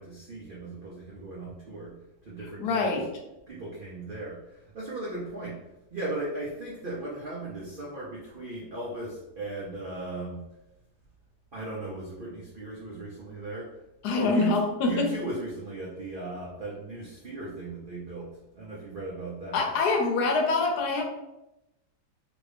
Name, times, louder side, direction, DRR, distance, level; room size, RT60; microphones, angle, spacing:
voice 1, 0.0-1.9 2.2-3.0 3.5-5.6 5.9-10.4 11.5-13.7 14.2-19.9, right 2 dB, 85° right, -5 dB, 0.4 m, -37 dB
voice 2, 2.6-3.1 14.0-15.1 19.5-21.0, left 3 dB, 75° left, 2 dB, 1.1 m, -25 dB
2.9 x 2.6 x 3.3 m, 0.92 s
omnidirectional pair, 1.8 m